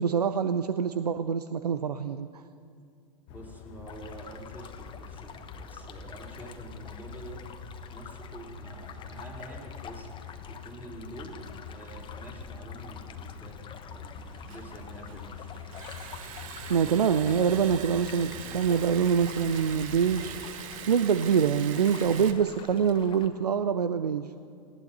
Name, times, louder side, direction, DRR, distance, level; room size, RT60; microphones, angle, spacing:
voice 1, 0.0-2.4 16.7-20.4 20.8-24.3, right 7 dB, 85° right, 11 dB, 0.5 m, -25 dB
sound 1, 3.3-20.5, left 6 dB, 50° left, 1.1 m, -45 dB
voice 2, 3.3-7.4 7.9-10.1 10.4-15.5, right 2 dB, 10° right, 0 dB, 3.6 m, -47 dB
sound 2, 3.9-23.3, left 6 dB, 25° left, 1.2 m, -48 dB
Liquid, 14.2-22.3, right 9 dB, 55° right, 1.2 m, -42 dB
19.0 x 17.5 x 4.2 m, 2.3 s
hypercardioid pair, 95°, 20 cm